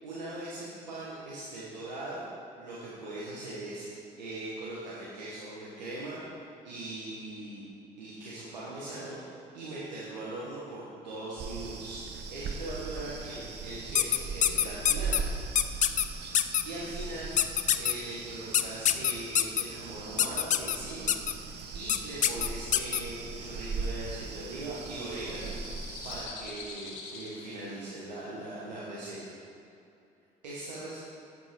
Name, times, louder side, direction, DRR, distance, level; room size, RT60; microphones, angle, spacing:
voice 1, 0.0-2.3 2.6-6.4 6.6-7.6 8.0-15.2 16.6-17.3 17.7-25.5 26.0-29.3 30.4-31.0, right 2 dB, 90° right, -7 dB, 1.0 m, -40 dB
sound 1, 11.4-26.3, right 4 dB, 50° right, 0.9 m, -39 dB
sound 2, 14.0-15.2 15.6-16.0 16.3-16.6 17.4-17.9 18.5-19.6 20.2-20.8 21.1-21.3 21.9-22.0 22.2-23.0, left 10 dB, 35° left, 0.4 m, -24 dB
sound 3, 23.8-29.0, left 4 dB, 70° left, 1.1 m, -47 dB
8.3 x 7.4 x 4.3 m, 2.6 s
hypercardioid pair, 50°, 21 cm